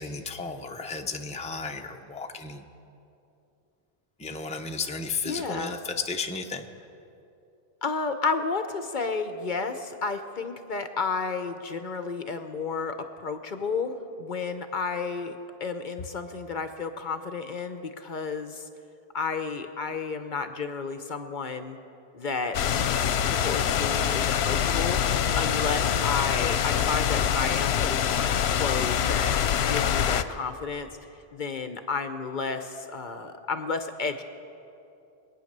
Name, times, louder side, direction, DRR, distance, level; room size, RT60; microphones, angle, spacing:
voice 1, 0.0-2.6 4.2-6.6, left 4 dB, 10° left, 4 dB, 0.7 m, -33 dB
voice 2, 5.2-5.8 7.8-18.7 19.1-21.8 22.1-25.0 25.4-29.3 29.6-30.9 31.3-34.2, left 4 dB, 55° left, 8 dB, 0.9 m, -32 dB
sound 1, 22.5-30.2, left 8 dB, 85° left, 0.9 m, -25 dB
23.5 x 9.4 x 6.6 m, 2.7 s
omnidirectional pair, 1.0 m